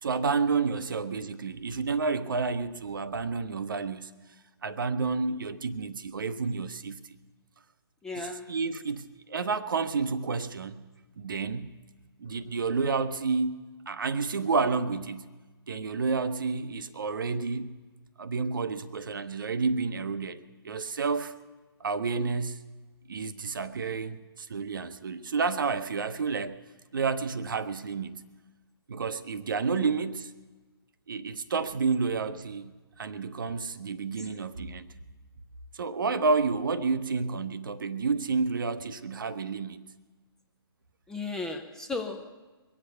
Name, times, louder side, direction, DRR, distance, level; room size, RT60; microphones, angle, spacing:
voice 1, 0.0-4.1 4.6-7.0 8.5-10.8 11.2-11.7 12.2-15.3 15.7-17.8 18.2-21.4 21.8-22.7 23.1-26.6 26.9-28.2 28.9-30.3 31.1-34.9 35.7-39.9, right 4 dB, 55° right, 12 dB, 0.8 m, -30 dB
voice 2, 8.0-8.5 34.1-34.3 41.1-42.3, left 3 dB, 5° left, 4 dB, 0.5 m, -35 dB
22.0 x 8.1 x 8.1 m, 1.3 s
figure-of-eight pair, 130°, 13 cm